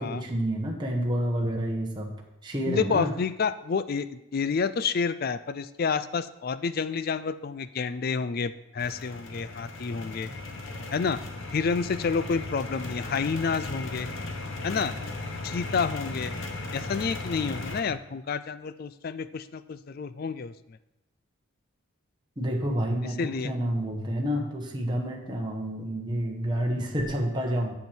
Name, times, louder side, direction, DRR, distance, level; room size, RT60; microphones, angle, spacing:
voice 1, 0.0-2.1 2.4-3.1 22.4-27.7, equal, 20° right, -1 dB, 1.1 m, -29 dB
voice 2, 2.7-10.3 10.9-11.2 11.5-14.1 14.6-14.9 15.4-16.3 16.7-20.5 23.2-23.5, left 5 dB, 45° left, 14 dB, 0.4 m, -29 dB
sound 1, 8.8-17.8, left 2 dB, 65° left, 1.0 m, -36 dB
8.2 x 7.1 x 4.5 m, 0.92 s
head